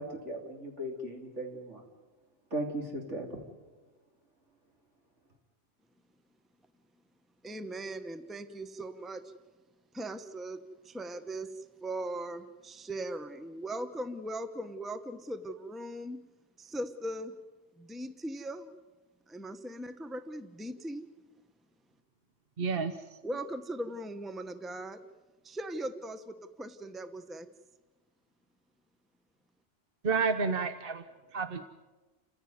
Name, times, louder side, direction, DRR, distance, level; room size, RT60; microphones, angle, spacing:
voice 1, 0.0-1.8 2.5-3.4, right 1 dB, 75° right, 2 dB, 3.8 m, -37 dB
voice 2, 7.4-9.3 9.9-16.2 16.6-17.3 17.8-18.7 19.3-21.1 23.2-25.0 25.4-27.5, right 1 dB, ahead, 10 dB, 1.0 m, -39 dB
voice 3, 22.6-23.2 30.0-31.0 31.3-31.7, right 5 dB, 50° right, 9 dB, 1.1 m, -30 dB
29.5 x 15.5 x 9.5 m, 1.2 s
omnidirectional pair, 1.2 m